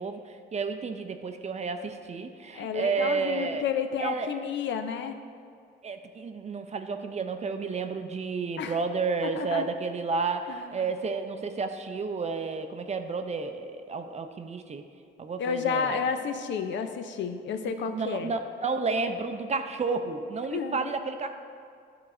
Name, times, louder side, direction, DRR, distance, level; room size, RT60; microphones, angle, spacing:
voice 1, 0.0-3.6 4.0-4.4 5.8-14.8 15.2-16.0 17.8-21.4, right 4 dB, 35° right, 7 dB, 0.5 m, -31 dB
voice 2, 2.5-5.2 8.6-8.8 9.2-9.7 10.5-10.7 15.4-18.3 20.5-20.9, left 6 dB, 65° left, 8 dB, 0.5 m, -31 dB
10.5 x 3.9 x 4.3 m, 2.3 s
cardioid pair, 90°, 20 cm